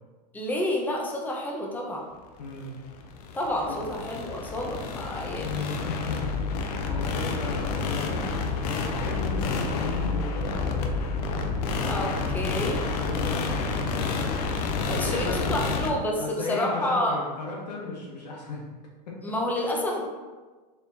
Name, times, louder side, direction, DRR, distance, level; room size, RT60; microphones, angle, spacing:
voice 1, 0.3-2.0 3.3-5.9 11.8-12.8 14.8-17.2 19.2-20.0, left 1 dB, 10° left, -1 dB, 0.7 m, -29 dB
voice 2, 2.4-2.8 3.6-3.8 5.4-8.6 8.9-10.9 12.8-14.2 14.9-15.8 16.2-18.6 19.1-19.2, left 2 dB, 85° left, -2 dB, 1.1 m, -35 dB
sound 1, 2.6-15.9, left 4 dB, 65° left, 0.5 m, -29 dB
4.2 x 3.4 x 2.7 m, 1.3 s
hypercardioid pair, 105°, 21 cm